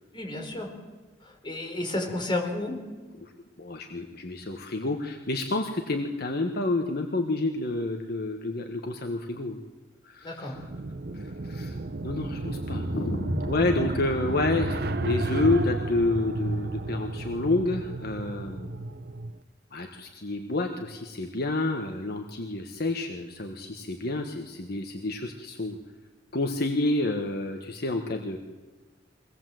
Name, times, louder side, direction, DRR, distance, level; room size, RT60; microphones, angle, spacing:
voice 1, 0.1-0.7 1.2-2.8 10.2-10.6, left 2 dB, 25° left, 2 dB, 4.4 m, -32 dB
voice 2, 3.6-9.6 10.0-10.5 11.1-11.8 12.0-18.8 19.7-25.8 26.3-28.4, left 2 dB, 60° left, 4 dB, 1.4 m, -29 dB
sound 1, 10.5-19.4, right 2 dB, 60° right, 1.0 m, -32 dB
23.5 x 18.0 x 7.7 m, 1.3 s
head